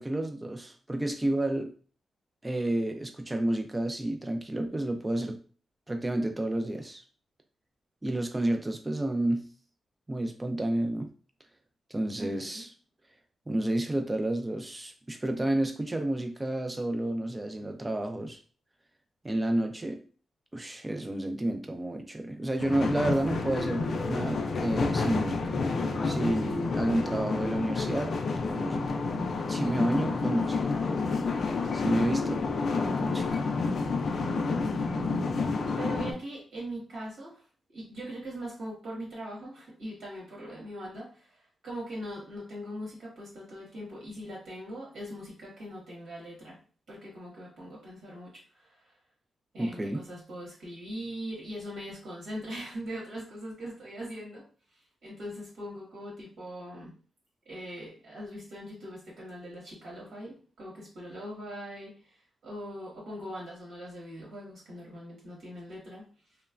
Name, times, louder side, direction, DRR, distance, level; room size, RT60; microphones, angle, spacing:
voice 1, 0.0-1.7 2.4-5.4 5.9-7.0 8.0-9.5 10.1-11.1 11.9-12.7 13.5-18.4 19.2-20.0 20.5-28.1 28.5-29.0 29.5-30.7 31.7-32.4 32.7-33.4 49.6-50.0, right 1 dB, 15° right, 5 dB, 0.4 m, -30 dB
voice 2, 12.1-12.7 34.1-46.6 46.9-48.9 49.5-56.9 57.4-66.1, equal, 75° right, -5 dB, 1.4 m, -41 dB
sound 1, 22.6-36.1, left 4 dB, 55° left, 0.3 m, -29 dB
3.0 x 2.1 x 2.4 m, 0.39 s
wide cardioid pair, 135°, 0 cm